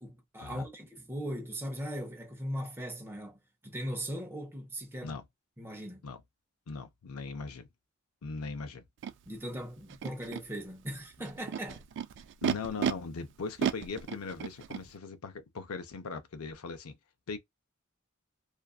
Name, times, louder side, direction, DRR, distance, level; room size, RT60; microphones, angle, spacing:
voice 1, 0.0-5.1 5.6-6.1 9.3-11.9, equal, 10° right, 0.7 m, -39 dB
voice 2, 6.7-7.7 8.2-8.8 12.4-17.0 17.3-17.4, left 4 dB, 85° left, 0.6 m, -39 dB
Animal, 9.0-9.1 9.9-10.4 11.2-12.9 13.6-14.8, right 8 dB, 55° right, 0.3 m, -33 dB
2.4 x 2.4 x 2.3 m
head